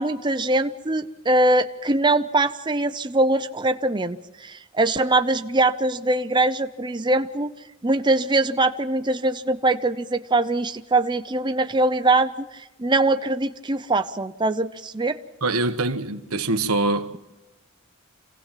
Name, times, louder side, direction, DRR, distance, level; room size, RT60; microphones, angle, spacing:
voice 1, 0.0-7.5 7.8-12.5 12.8-15.2, right 2 dB, 20° right, 0.7 m, -22 dB
voice 2, 15.4-17.2, right 2 dB, 85° right, 1.4 m, -24 dB
27.5 x 17.5 x 7.4 m
head